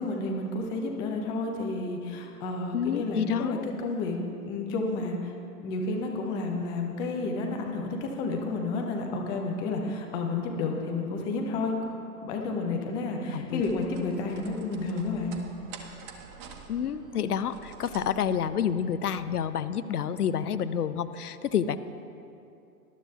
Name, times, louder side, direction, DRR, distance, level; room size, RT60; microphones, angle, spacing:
voice 1, 0.0-4.2 4.5-12.0 12.2-15.3, left 3 dB, 10° left, 2 dB, 0.4 m, -31 dB
voice 2, 2.7-3.6 13.3-13.6 16.7-21.8, left 8 dB, 75° left, 13 dB, 0.6 m, -29 dB
sound 1, 13.6-19.4, right 5 dB, 35° right, 1.1 m, -48 dB
19.0 x 12.0 x 2.3 m, 2.6 s
figure-of-eight pair, 110°, 46 cm